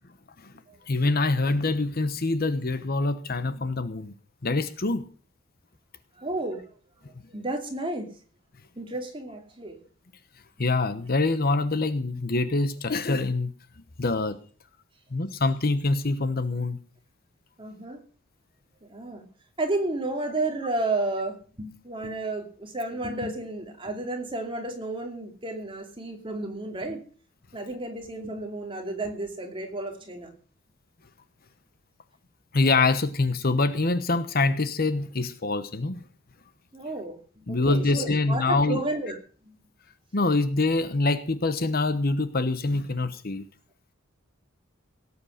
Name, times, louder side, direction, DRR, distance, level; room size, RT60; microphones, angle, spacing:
voice 1, 0.9-4.1 4.4-5.0 10.6-13.5 14.0-14.4 15.1-16.8 32.5-36.0 37.5-38.8 40.1-43.4, left 3 dB, 45° left, 12 dB, 1.0 m, -25 dB
voice 2, 6.2-6.6 7.3-8.1 8.8-9.8 17.6-18.0 18.9-19.2 19.6-27.0 27.5-30.3 36.7-39.2 39.4-39.5, right 2 dB, 25° right, 3 dB, 2.8 m, -32 dB
17.5 x 8.3 x 6.6 m, 0.41 s
head